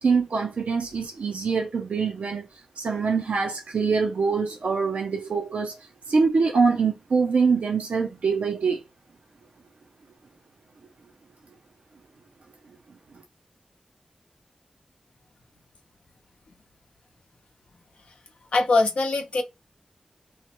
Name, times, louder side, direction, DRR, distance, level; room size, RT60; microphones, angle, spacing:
voice 1, 0.0-5.8 6.1-8.8, right 5 dB, 80° right, 0.4 m, -24 dB
voice 2, 18.5-19.4, left 3 dB, 85° left, 0.7 m, -22 dB
3.2 x 2.1 x 2.9 m
cardioid pair, 40°, 2 cm